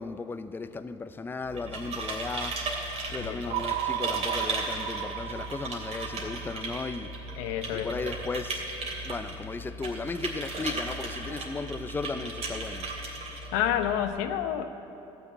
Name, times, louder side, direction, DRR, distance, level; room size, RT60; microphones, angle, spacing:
voice 1, 0.0-2.6 3.1-7.1 7.7-8.7 9.0-12.9, left 4 dB, 15° left, 11 dB, 0.5 m, -35 dB
sound 1, 1.4-14.1, right 2 dB, 55° right, 3.1 m, -36 dB
voice 2, 3.2-3.6 7.4-8.0 13.5-14.7, left 10 dB, 80° left, 8 dB, 0.8 m, -29 dB
sound 2, 3.5-7.7, right 12 dB, 75° right, 0.6 m, -35 dB
13.5 x 6.9 x 9.1 m, 2.9 s
supercardioid pair, 80°, 13 cm